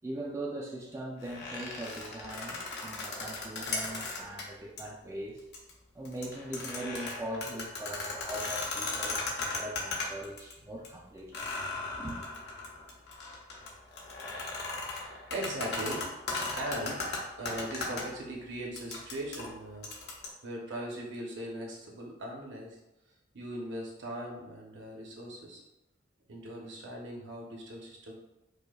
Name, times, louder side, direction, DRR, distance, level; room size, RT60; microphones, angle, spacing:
voice 1, 0.0-5.4 5.9-11.5 11.9-12.2, right 1 dB, 15° right, -3 dB, 0.3 m, -40 dB
sound 1, 1.2-4.4 4.8-4.9 5.4-5.7 6.1-10.5 10.8-10.9 11.3-18.0 18.8-20.3, left 3 dB, 60° left, 0.7 m, -37 dB
voice 2, 15.3-16.0 16.5-17.0 17.4-22.8 23.3-25.6 26.3-28.1, right 1 dB, 65° right, -1 dB, 0.7 m, -39 dB
4.9 x 2.1 x 2.3 m, 0.96 s
head